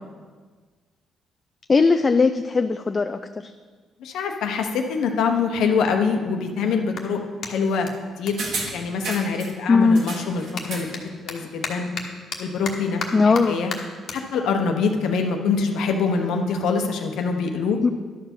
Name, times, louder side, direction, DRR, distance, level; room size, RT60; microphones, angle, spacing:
voice 1, 1.7-3.5 9.7-10.0 13.1-13.6 17.8-17.9, left 4 dB, 30° left, 8 dB, 0.4 m, -19 dB
voice 2, 4.0-7.9 8.2-8.4 8.7-10.9 11.2-11.9 12.4-13.7 14.1-17.8, left 5 dB, 80° left, 4 dB, 1.0 m, -24 dB
Clapping, 6.9-9.6 9.9-16.6, left 5 dB, 60° left, 1.2 m, -37 dB
sound 1, 8.4-9.5 9.9-11.0 11.3-11.4, right 3 dB, 70° right, 1.9 m, -32 dB
11.5 x 4.7 x 6.1 m, 1.5 s
cardioid pair, 90°, 0 cm